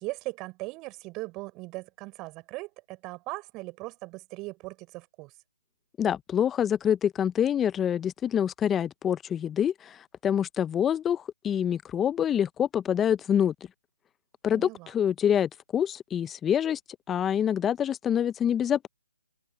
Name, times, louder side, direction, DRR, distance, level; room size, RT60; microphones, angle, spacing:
voice 1, 0.0-5.3 14.5-14.9, right 22 dB, 20° right, 5.7 m, -39 dB
voice 2, 6.0-13.5 14.4-16.8 17.1-18.9, left 9 dB, 10° left, 1.0 m, -26 dB
open air
figure-of-eight pair, 145°, 0 cm